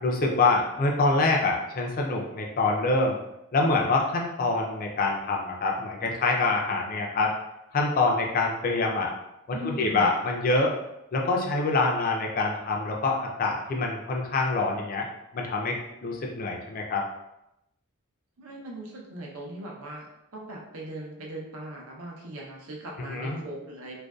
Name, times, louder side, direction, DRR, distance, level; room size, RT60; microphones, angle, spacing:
voice 1, 0.0-3.2 3.5-7.3 7.7-9.1 9.6-10.7 11.1-15.1 15.3-17.0 23.1-23.4, left 3 dB, 40° left, 0 dB, 0.4 m, -25 dB
voice 2, 9.5-10.1 18.4-24.0, right 1 dB, 70° right, -2 dB, 0.6 m, -39 dB
2.5 x 2.2 x 2.2 m, 0.86 s
head